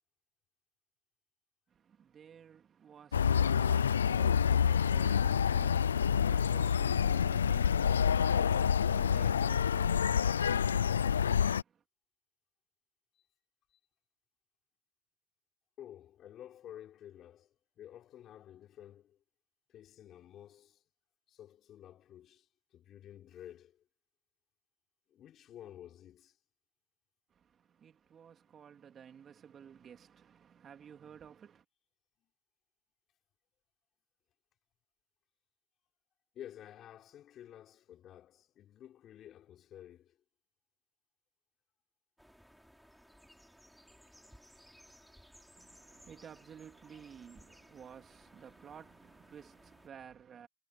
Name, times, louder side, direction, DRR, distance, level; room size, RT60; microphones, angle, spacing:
voice 1, 1.7-11.8 27.3-31.7 45.5-50.5, right 8 dB, 20° right, 3.5 m, -54 dB
sound 1, 3.1-11.6, left 7 dB, 85° left, 0.4 m, -27 dB
voice 2, 15.8-19.2 19.7-20.8 21.3-22.5 22.7-23.8 25.1-26.4 36.3-40.2, left 11 dB, 30° left, 4.6 m, -52 dB
sound 2, 42.2-49.9, equal, ahead, 7.1 m, -60 dB
hypercardioid pair, 125°, 0 cm